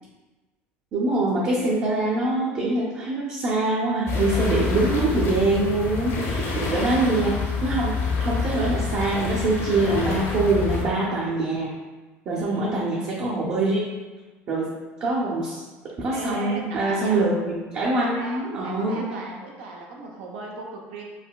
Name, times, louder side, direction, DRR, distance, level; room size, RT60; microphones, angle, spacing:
voice 1, 0.9-7.3 7.6-11.7 12.3-13.8 14.5-14.7 15.0-15.6 16.0-19.0, right 2 dB, 50° right, -6 dB, 0.7 m, -24 dB
sound 1, 4.1-10.8, left 4 dB, 60° left, 0.8 m, -27 dB
voice 2, 12.3-13.3 16.1-17.2 17.9-21.0, right 3 dB, 85° right, -1 dB, 0.6 m, -37 dB
4.0 x 2.2 x 2.3 m, 1.2 s
supercardioid pair, 85°, 6 cm